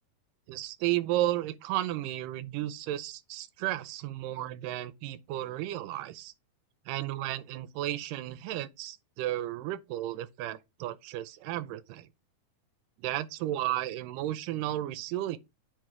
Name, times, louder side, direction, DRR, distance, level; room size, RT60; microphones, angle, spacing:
voice 1, 0.5-6.3 6.9-12.1 13.0-15.4, right 14 dB, 85° right, 2.2 m, -33 dB
8.9 x 3.0 x 4.6 m
omnidirectional pair, 3.8 m